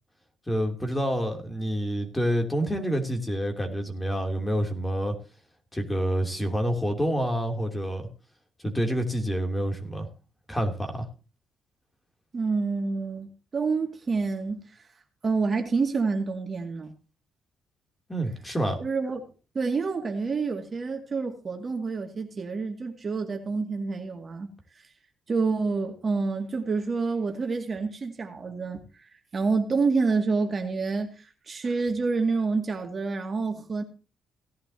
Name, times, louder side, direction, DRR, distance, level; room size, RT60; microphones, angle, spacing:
voice 1, 0.5-5.1 5.7-8.1 8.6-10.1 10.5-11.1 18.1-18.8, equal, 15° left, 3.0 m, -27 dB
voice 2, 12.3-14.8 15.2-16.9 18.8-19.2 19.5-24.5 25.3-33.8, right 4 dB, 40° right, 2.2 m, -28 dB
17.5 x 11.0 x 2.8 m
cardioid pair, 90°, 0 cm